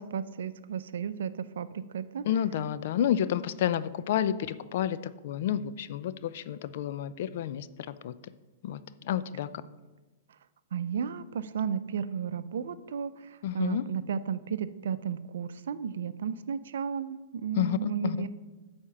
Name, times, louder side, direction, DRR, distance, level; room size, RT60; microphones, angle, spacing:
voice 1, 0.0-2.3 10.7-13.1 13.5-18.3, right 7 dB, 75° right, 14 dB, 0.5 m, -33 dB
voice 2, 2.2-5.0 5.2-8.1 8.6-9.5 13.4-13.9 17.5-18.3, left 10 dB, 60° left, 14 dB, 0.5 m, -30 dB
9.8 x 4.3 x 7.1 m, 1.2 s
hypercardioid pair, 120°, 0 cm